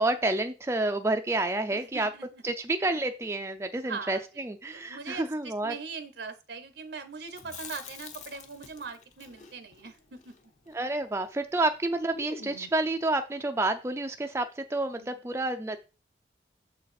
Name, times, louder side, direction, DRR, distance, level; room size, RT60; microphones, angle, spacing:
voice 1, 0.0-2.1 2.4-5.7 10.7-15.8, right 2 dB, 15° right, 6 dB, 0.4 m, -29 dB
voice 2, 1.7-2.4 3.8-4.4 4.7-10.3 15.0-15.2, right 5 dB, 70° right, 10 dB, 0.8 m, -41 dB
Chewing mastication, 7.3-11.5 11.7-11.8 12.1-12.9, left 5 dB, 45° left, 0.9 m, -47 dB
7.1 x 4.0 x 4.2 m, 0.31 s
head